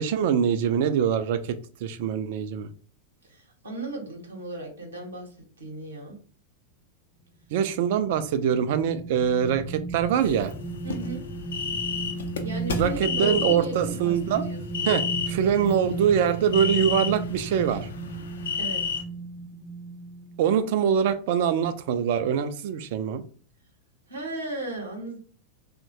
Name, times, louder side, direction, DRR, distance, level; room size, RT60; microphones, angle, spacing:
voice 1, 0.0-2.7 7.5-10.5 12.7-14.4 14.9-17.9 20.4-23.2, right 8 dB, 50° right, 11 dB, 0.3 m, -24 dB
voice 2, 3.2-5.3 5.6-6.2 7.9-8.0 10.8-11.2 12.4-15.0 18.5-19.0 24.1-25.2, right 2 dB, 75° right, 0 dB, 0.8 m, -36 dB
sound 1, 7.7-20.5 21.0-21.1, right 2 dB, 5° left, 0.5 m, -35 dB
sound 2, 10.2-19.0, left 5 dB, 65° left, 0.4 m, -32 dB
2.9 x 2.1 x 2.7 m, 0.41 s
figure-of-eight pair, 90°, 0 cm